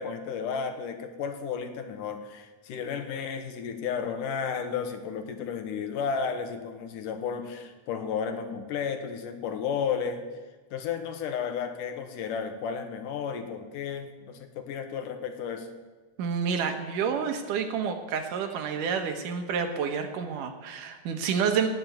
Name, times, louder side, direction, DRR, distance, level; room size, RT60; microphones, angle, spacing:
voice 1, 0.0-10.3 10.7-15.7, left 6 dB, 80° left, 6 dB, 2.9 m, -33 dB
voice 2, 16.2-21.7, right 6 dB, 80° right, 5 dB, 2.9 m, -29 dB
18.5 x 7.0 x 9.3 m, 1.3 s
omnidirectional pair, 3.7 m